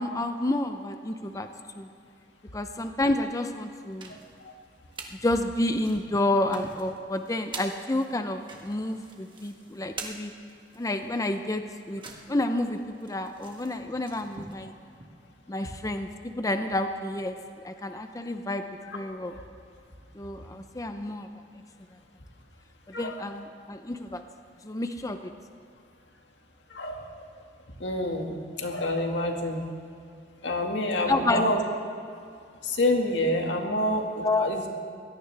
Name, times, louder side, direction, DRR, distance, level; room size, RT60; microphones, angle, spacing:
voice 1, 0.0-1.5 1.8-1.9 2.5-4.1 5.2-10.3 10.8-12.0 12.3-14.7 15.5-16.1 16.4-17.4 17.6-18.6 18.9-19.3 20.2-21.3 23.0-24.2 24.6-25.3 31.1-31.5 34.2-34.5, left 1 dB, 20° left, 7 dB, 0.6 m, -29 dB
sound 1, 3.7-5.2 5.5-15.1, right 3 dB, 30° right, 1.5 m, -45 dB
voice 2, 26.7-27.3 27.8-29.6 30.4-31.6 32.6-34.7, left 1 dB, 85° left, 2 dB, 1.9 m, -28 dB
23.0 x 17.0 x 3.4 m, 2.4 s
head